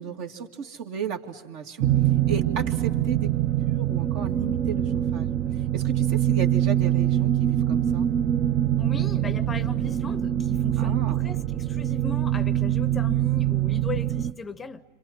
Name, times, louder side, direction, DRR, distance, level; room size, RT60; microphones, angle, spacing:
voice 1, 0.0-1.9 2.3-5.3 5.7-8.1 10.8-11.2, right 6 dB, 60° right, 2.2 m, -34 dB
sound 1, 1.8-14.3, right 12 dB, 40° right, 0.9 m, -24 dB
voice 2, 8.8-14.8, left 4 dB, 15° left, 0.8 m, -38 dB
27.0 x 26.5 x 7.3 m
hypercardioid pair, 115°, 0 cm